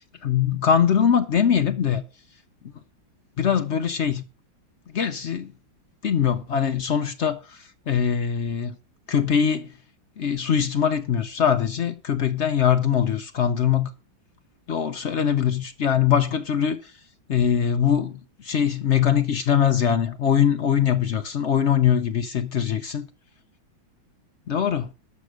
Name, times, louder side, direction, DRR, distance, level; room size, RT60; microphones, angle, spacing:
voice 1, 0.2-2.0 3.4-4.2 4.9-5.5 6.0-8.8 9.1-9.7 10.2-13.9 14.7-16.9 17.3-23.1 24.5-24.9, left 8 dB, 75° left, 0.6 m, -22 dB
12.5 x 6.1 x 6.5 m
omnidirectional pair, 2.2 m